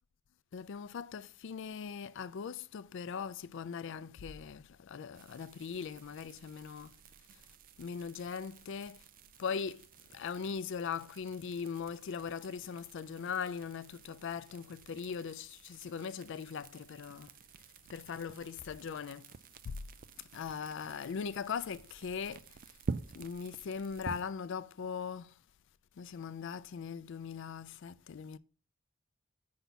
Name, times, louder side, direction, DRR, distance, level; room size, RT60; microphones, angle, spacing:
voice 1, 0.5-7.0 7.8-9.0 9.4-9.8 10.1-17.3 17.9-19.3 19.6-19.8 20.3-22.4 23.1-25.3 26.0-28.4, left 6 dB, 60° left, 0.4 m, -40 dB
sound 1, 5.1-24.2, right 4 dB, 45° right, 0.4 m, -49 dB
9.1 x 5.7 x 4.1 m
head